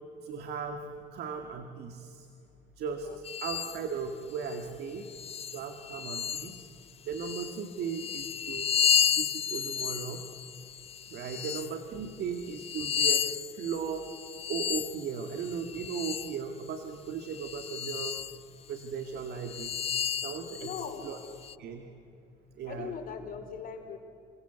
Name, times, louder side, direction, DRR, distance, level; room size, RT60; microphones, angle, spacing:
voice 1, 0.2-2.3 2.8-5.1 5.5-6.7 7.1-8.7 9.1-10.2 11.1-14.0 14.5-18.1 18.7-19.7 20.2-21.2 21.6-21.9 22.6-22.9, right 6 dB, 75° right, 5 dB, 2.2 m, -37 dB
sound 1, 3.2-3.8 4.4-4.6 5.1-6.7 7.1-11.7 12.3-16.4 17.3-18.4 18.8-18.9 19.4-21.5, left 8 dB, 35° left, 0.6 m, -32 dB
voice 2, 20.6-21.1 22.7-24.0, left 7 dB, 55° left, 5 dB, 4.4 m, -41 dB
28.5 x 25.0 x 8.3 m, 2.6 s
cardioid pair, 110°, 17 cm